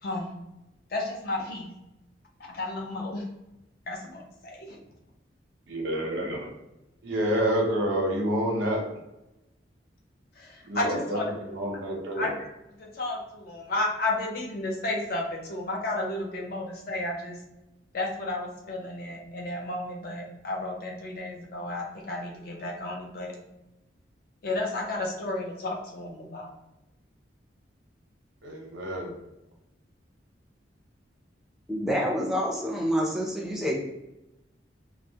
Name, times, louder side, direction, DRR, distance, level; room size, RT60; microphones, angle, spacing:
voice 1, 0.0-0.3 0.9-1.7 2.4-3.2 3.9-4.8 10.4-11.5 12.1-17.4 17.9-23.4 24.4-26.5, left 2 dB, 55° left, 0 dB, 0.5 m, -32 dB
voice 2, 5.7-6.5 7.0-8.8 10.7-11.2 11.5-12.3 28.4-29.1, equal, 90° right, 0 dB, 0.6 m, -28 dB
voice 3, 31.7-33.7, equal, ahead, -2 dB, 0.4 m, -27 dB
2.2 x 2.0 x 2.7 m, 0.93 s
head